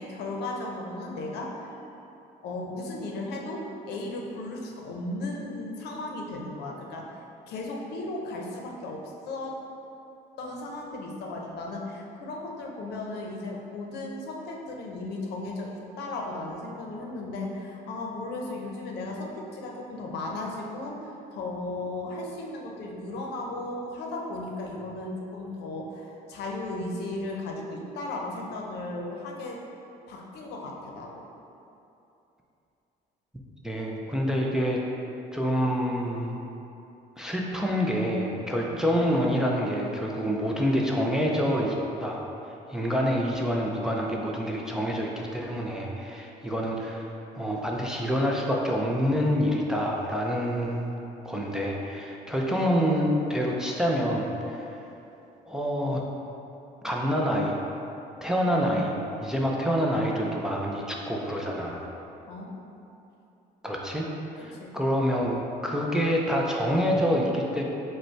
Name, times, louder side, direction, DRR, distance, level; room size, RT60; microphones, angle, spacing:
voice 1, 0.0-1.8 2.4-9.6 10.4-29.6 30.1-31.2 38.6-38.8 62.3-62.5 64.6-64.7, left 2 dB, 75° left, 0 dB, 0.7 m, -36 dB
voice 2, 33.6-34.8 35.3-36.4 37.2-41.7 42.0-42.2 42.7-47.1 47.3-50.9 51.2-54.7 55.5-56.0 56.8-57.6 58.2-58.9 59.2-61.9 63.6-64.1 64.3-67.6, equal, 5° right, -2 dB, 0.4 m, -27 dB
5.1 x 2.2 x 4.4 m, 2.9 s
cardioid pair, 110°, 17 cm